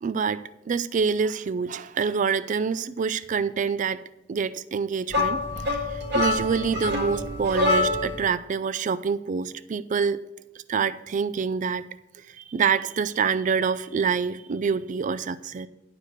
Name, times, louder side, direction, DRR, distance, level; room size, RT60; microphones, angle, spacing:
voice 1, 0.0-4.0 4.3-10.2 10.7-11.8 12.3-15.7, right 6 dB, 40° right, 0.3 m, -26 dB
sound 1, 5.1-8.2, left 2 dB, 60° right, 1.9 m, -25 dB
11.0 x 4.9 x 6.5 m
head